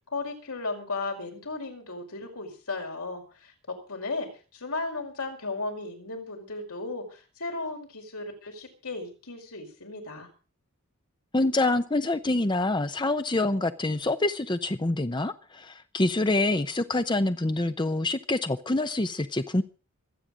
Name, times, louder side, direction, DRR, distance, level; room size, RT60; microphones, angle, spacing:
voice 1, 0.1-4.3 4.5-10.3, left 3 dB, 80° left, 2 dB, 5.2 m, -35 dB
voice 2, 11.3-19.6, left 2 dB, 20° left, 10 dB, 0.7 m, -26 dB
25.0 x 8.9 x 5.1 m, 0.37 s
head